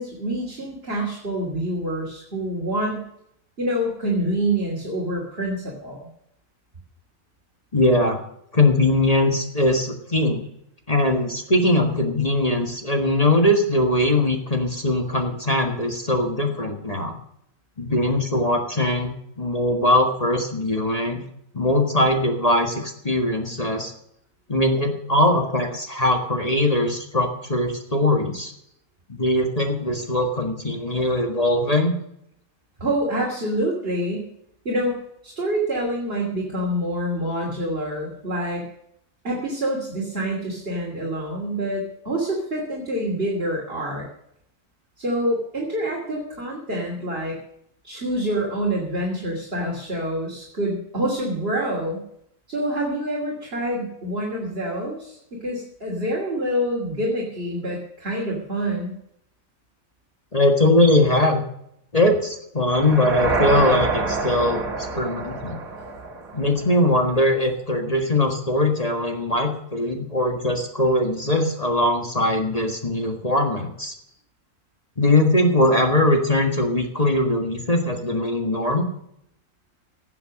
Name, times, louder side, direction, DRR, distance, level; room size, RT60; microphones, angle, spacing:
voice 1, 0.0-3.0 3.6-6.1 32.8-34.3 34.6-35.0 35.2-38.7 39.2-44.1 45.0-47.4 47.8-52.0 52.5-59.0, right 1 dB, 45° right, -2 dB, 3.2 m, -26 dB
voice 2, 7.7-8.2 8.5-10.4 10.9-17.2 17.8-21.2 21.5-23.9 24.5-28.5 29.1-31.9 60.3-61.4 61.9-65.6 66.3-73.9 75.0-78.9, left 1 dB, 25° left, 3 dB, 1.7 m, -21 dB
sound 1, 62.7-66.8, right 3 dB, 80° right, 2.3 m, -26 dB
17.0 x 7.8 x 6.4 m, 0.74 s
omnidirectional pair, 1.4 m